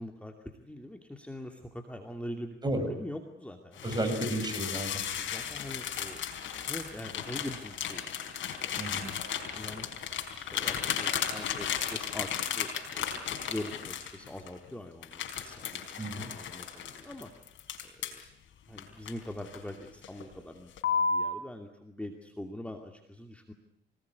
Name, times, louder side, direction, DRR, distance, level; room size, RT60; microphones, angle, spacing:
voice 1, 0.0-3.9 4.4-4.5 5.2-6.2 6.6-8.3 9.5-9.9 10.3-13.0 13.5-15.8 16.1-17.3 17.8-18.2 18.7-23.5, left 1 dB, 5° left, 3 dB, 2.6 m, -43 dB
sound 1, 3.8-14.5 15.0-18.2 18.8-19.7 20.0-20.3 20.8-21.3, left 7 dB, 75° left, 4.4 m, -34 dB
voice 2, 3.8-5.0 8.8-9.1 16.0-16.3, right 1 dB, 20° right, 5 dB, 7.9 m, -32 dB
25.5 x 19.5 x 9.7 m, 0.76 s
cardioid pair, 90°, 20 cm